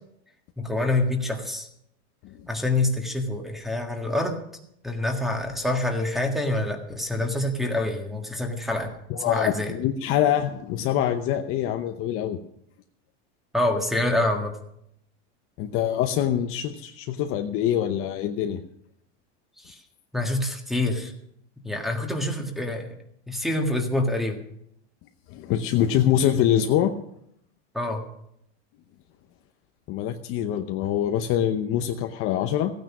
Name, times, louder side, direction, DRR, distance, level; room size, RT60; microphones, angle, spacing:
voice 1, 0.6-1.7 2.5-4.4 4.8-8.9 9.2-9.7 13.5-14.6 19.6-19.8 20.1-21.1 21.6-23.0 23.3-24.4 27.7-28.0, left 2 dB, ahead, 3 dB, 1.7 m, -26 dB
voice 2, 9.1-12.4 15.6-18.6 25.3-26.9 29.9-32.7, left 10 dB, 40° left, 6 dB, 0.8 m, -24 dB
16.0 x 9.3 x 6.1 m, 0.75 s
supercardioid pair, 150°, 35 cm